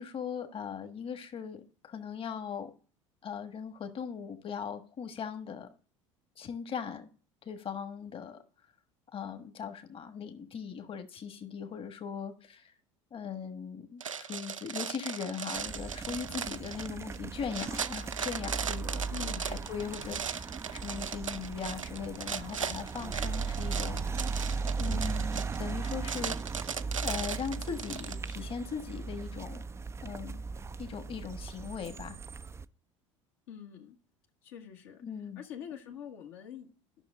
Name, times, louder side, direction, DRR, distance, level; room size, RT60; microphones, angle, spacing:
voice 1, 0.0-2.7 3.2-5.7 6.4-7.1 7.4-8.4 9.1-12.7 13.1-24.0 24.8-26.6 27.0-29.6 30.0-30.4 30.8-32.2 35.0-35.4, left 7 dB, 35° left, 1.5 m, -39 dB
sound 1, 14.0-28.4, right 7 dB, 90° right, 0.4 m, -38 dB
sound 2, 15.6-32.6, right 4 dB, 15° right, 0.4 m, -37 dB
voice 2, 19.1-20.3 33.5-34.0 34.4-35.0 35.4-36.7, left 8 dB, 65° left, 1.5 m, -45 dB
12.5 x 6.1 x 3.7 m
figure-of-eight pair, 70°, 16 cm